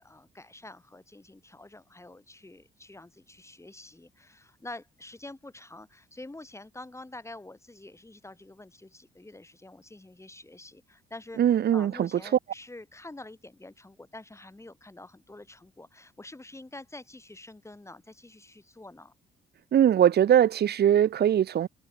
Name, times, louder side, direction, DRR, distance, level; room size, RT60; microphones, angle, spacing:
voice 1, 0.0-19.1, left 2 dB, 15° left, 7.6 m, -47 dB
voice 2, 11.4-12.1 19.7-21.7, right 10 dB, 55° right, 1.0 m, -21 dB
cardioid pair, 90°, 20 cm